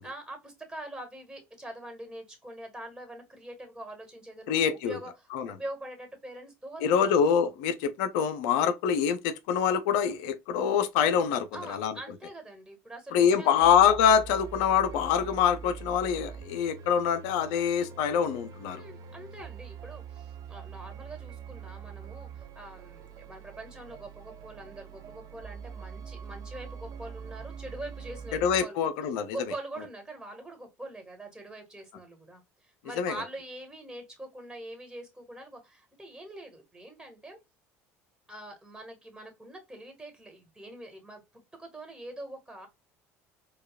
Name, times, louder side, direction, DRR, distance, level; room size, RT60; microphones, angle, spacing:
voice 1, 0.0-7.1 11.5-13.7 18.7-28.8 29.3-37.4 38.3-41.2 41.6-42.7, right 1 dB, 5° right, 1.6 m, -44 dB
voice 2, 4.5-5.0 5.3-5.5 6.8-12.0 13.1-18.8 28.4-29.4 33.0-33.1, left 8 dB, 70° left, 0.5 m, -25 dB
sound 1, 13.6-28.6, right 6 dB, 50° right, 0.7 m, -44 dB
4.6 x 2.3 x 2.3 m
hypercardioid pair, 75°, 8 cm